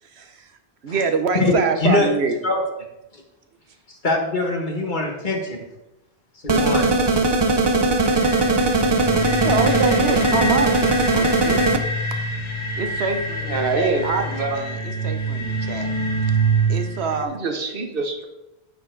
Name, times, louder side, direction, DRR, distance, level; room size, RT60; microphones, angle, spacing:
voice 1, 0.0-0.5 0.8-2.3 9.4-11.8 12.8-15.9 16.7-17.4, right 5 dB, 80° right, 7 dB, 1.2 m, -25 dB
voice 2, 4.0-5.6 6.4-6.9, left 2 dB, 50° left, 1 dB, 1.7 m, -22 dB
sound 1, 6.5-11.8, right 2 dB, 30° right, 0.5 m, -19 dB
sound 2, 8.0-17.2, right 2 dB, 30° left, 1.0 m, -26 dB
voice 3, 13.4-14.6 17.2-18.3, right 4 dB, 60° right, 5 dB, 1.1 m, -25 dB
9.1 x 6.9 x 3.9 m, 0.94 s
omnidirectional pair, 1.1 m